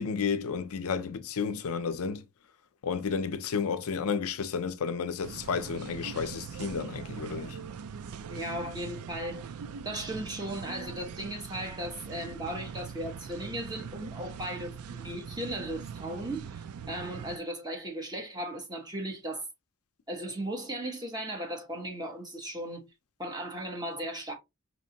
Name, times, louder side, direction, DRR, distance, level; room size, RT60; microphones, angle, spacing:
voice 1, 0.0-2.2 2.8-7.6, left 5 dB, 70° left, 0.5 m, -32 dB
sound 1, 5.2-17.4, right 6 dB, 70° right, 0.4 m, -42 dB
voice 2, 8.3-9.5 9.8-19.5 20.1-22.9 23.2-24.3, right 1 dB, 20° right, 1.4 m, -37 dB
5.1 x 2.9 x 2.8 m
head